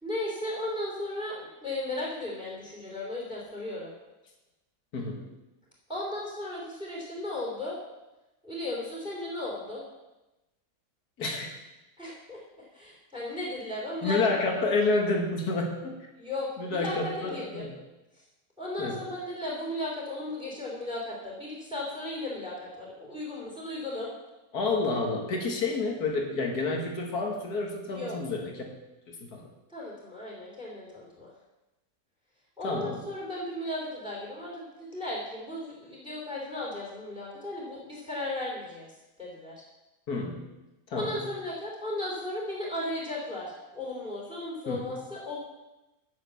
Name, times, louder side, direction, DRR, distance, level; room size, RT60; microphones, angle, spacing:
voice 1, 0.0-3.9 5.9-7.8 8.4-9.8 12.0-12.4 12.7-14.2 16.2-17.7 18.6-24.1 27.9-28.2 29.7-31.3 32.6-38.9 39.2-39.6 40.9-45.4, left 1 dB, 5° right, -3 dB, 3.1 m, -35 dB
voice 2, 4.9-5.3 11.2-11.5 14.0-16.1 16.6-17.7 18.8-19.0 24.5-28.7 29.1-29.4 32.6-33.0 40.1-40.5 40.9-41.2 44.7-44.9, left 3 dB, 70° left, 2 dB, 2.2 m, -29 dB
9.2 x 7.3 x 7.0 m, 1.0 s
omnidirectional pair, 1.7 m